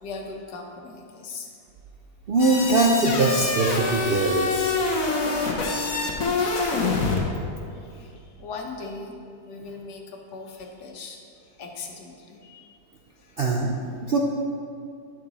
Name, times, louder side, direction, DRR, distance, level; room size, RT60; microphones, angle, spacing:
voice 1, 0.0-1.5 7.7-9.1 9.4-11.2 11.6-12.8 13.2-13.4, left 4 dB, 90° left, 1 dB, 1.6 m, -39 dB
voice 2, 2.3-4.8 13.4-13.8 14.0-14.2, right 2 dB, 60° right, -1 dB, 0.6 m, -22 dB
sound 1, 2.4-7.2, left 3 dB, 60° left, 1.4 m, -25 dB
11.0 x 6.0 x 4.1 m, 2.4 s
omnidirectional pair, 1.7 m